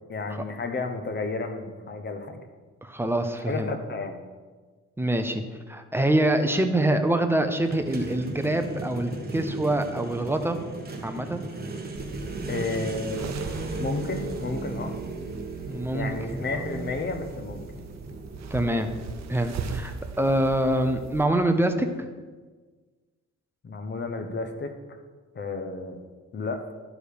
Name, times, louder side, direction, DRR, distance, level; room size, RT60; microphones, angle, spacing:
voice 1, 0.1-2.4 3.5-4.2 12.5-13.3 13.8-15.0 15.9-17.6 23.6-24.7 25.3-26.0 26.3-26.7, left 3 dB, 35° left, 7 dB, 1.0 m, -32 dB
voice 2, 2.8-3.7 5.0-5.4 5.7-10.6 11.0-11.4 15.7-16.6 18.5-18.9 19.3-22.1, right 1 dB, 5° right, 6 dB, 0.7 m, -25 dB
sound 1, 7.7-22.0, right 2 dB, 30° right, 1.5 m, -37 dB
sound 2, 12.0-21.2, right 5 dB, 60° right, 0.8 m, -40 dB
11.5 x 5.0 x 5.0 m, 1.4 s
cardioid pair, 125°, 31 cm